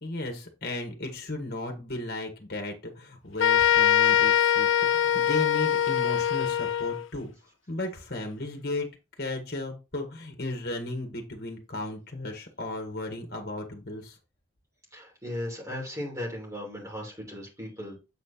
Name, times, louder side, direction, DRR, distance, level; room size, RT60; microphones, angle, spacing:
voice 1, 0.0-7.3 7.7-8.9 9.2-14.2, left 2 dB, 50° left, 1.8 m, -35 dB
sound 1, 3.4-7.1, left 10 dB, 80° left, 0.4 m, -23 dB
voice 2, 14.9-17.9, left 1 dB, 15° right, 3.1 m, -36 dB
7.9 x 4.4 x 4.3 m
head